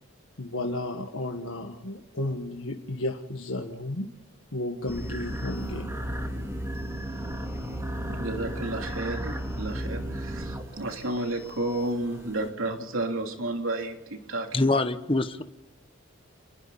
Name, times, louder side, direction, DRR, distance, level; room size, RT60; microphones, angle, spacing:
voice 1, 0.4-4.1 4.5-5.9 8.1-8.2 8.6-8.7, left 1 dB, 80° left, 1.7 m, -33 dB
sound 1, 4.9-12.5, equal, 15° right, 3.5 m, -34 dB
voice 2, 8.2-14.5, right 2 dB, 80° right, 3.2 m, -31 dB
voice 3, 14.5-15.4, left 2 dB, 25° left, 1.1 m, -24 dB
29.0 x 21.5 x 4.2 m
head